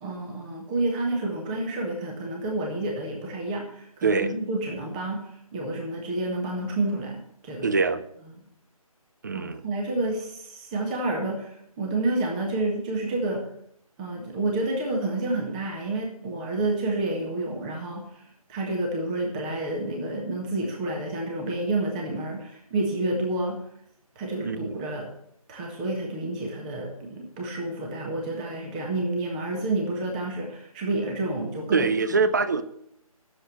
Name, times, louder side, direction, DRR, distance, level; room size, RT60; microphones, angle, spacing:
voice 1, 0.0-7.8 9.3-13.5 14.0-23.6 24.1-25.1 25.5-31.9, right 2 dB, 15° right, 0 dB, 1.6 m, -29 dB
voice 2, 4.0-4.3 7.6-8.0 9.2-9.6 24.4-24.9 31.7-32.6, right 4 dB, 30° right, 13 dB, 0.7 m, -24 dB
11.5 x 7.4 x 7.4 m, 0.71 s
figure-of-eight pair, 155°, 19 cm